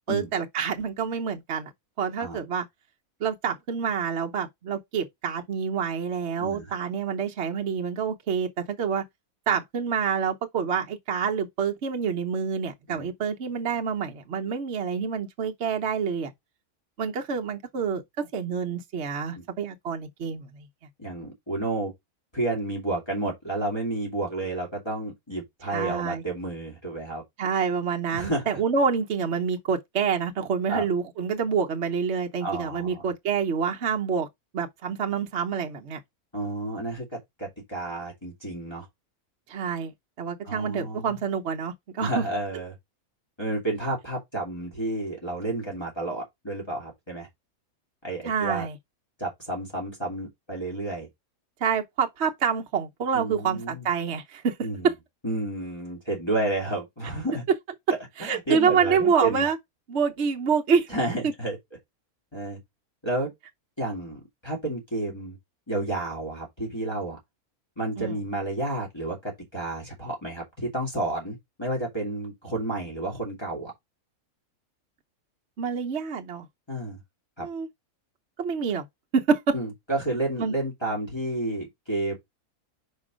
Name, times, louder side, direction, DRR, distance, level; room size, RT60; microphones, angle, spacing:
voice 1, 0.1-1.7 2.0-2.7 3.2-9.0 9.5-16.3 17.0-20.7 25.7-26.2 27.4-34.3 34.5-36.0 39.5-39.9 40.2-42.2 48.2-48.8 51.6-54.6 54.8-54.9 58.2-59.6 59.9-60.9 68.0-68.2 75.6-76.5 77.4-77.7 78.4-78.9 79.1-79.5 80.4-80.5, right 6 dB, 50° right, 1.1 m, -27 dB
voice 2, 21.0-21.9 22.3-27.2 28.1-28.5 30.7-30.9 32.4-33.1 36.3-38.9 40.4-41.2 42.0-42.7 43.4-47.3 48.0-48.7 49.2-51.1 53.1-53.9 54.6-54.9 55.2-57.4 57.9-59.5 60.9-61.6 62.3-62.6 63.0-63.3 63.8-65.4 65.7-67.2 67.8-73.7 76.7-77.0 77.4-77.5 79.5-82.2, right 2 dB, 15° left, 2.7 m, -31 dB
5.3 x 4.9 x 5.0 m
omnidirectional pair, 1.5 m